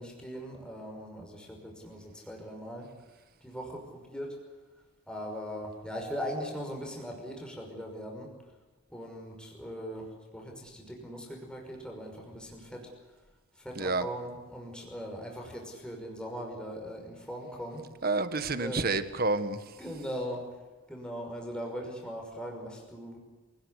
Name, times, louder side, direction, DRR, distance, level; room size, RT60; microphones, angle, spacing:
voice 1, 0.0-2.9 3.4-4.4 5.1-8.3 8.9-12.9 13.6-17.8 18.5-18.8 19.8-20.5 20.9-23.2, equal, 5° left, 0 dB, 5.8 m, -40 dB
voice 2, 13.7-14.1 18.0-19.8, right 3 dB, 45° right, 11 dB, 1.6 m, -29 dB
27.5 x 19.5 x 8.4 m, 1.3 s
head